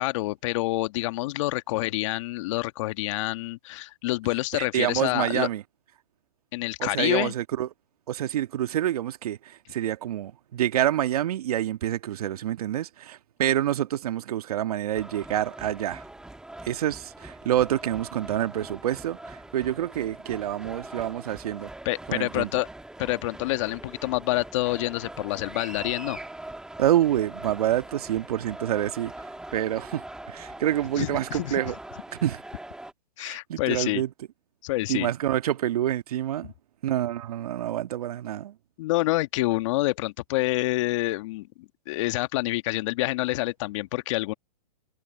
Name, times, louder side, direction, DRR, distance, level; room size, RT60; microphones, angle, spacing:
voice 1, 0.0-5.5 6.5-7.3 21.9-22.7 23.0-26.2 31.0-31.6 33.2-34.0 34.6-35.1 38.8-41.5 41.9-44.3, left 19 dB, 45° left, 1.7 m, -27 dB
voice 2, 4.5-5.6 6.8-7.7 8.1-16.0 16.6-21.7 22.1-22.5 26.8-29.1 29.5-31.8 32.2-32.4 33.2-34.1 34.9-36.5 36.8-38.5, right 12 dB, 60° right, 1.6 m, -27 dB
sound 1, 14.9-32.9, right 1 dB, 5° right, 1.5 m, -42 dB
hypercardioid pair, 130°, 21 cm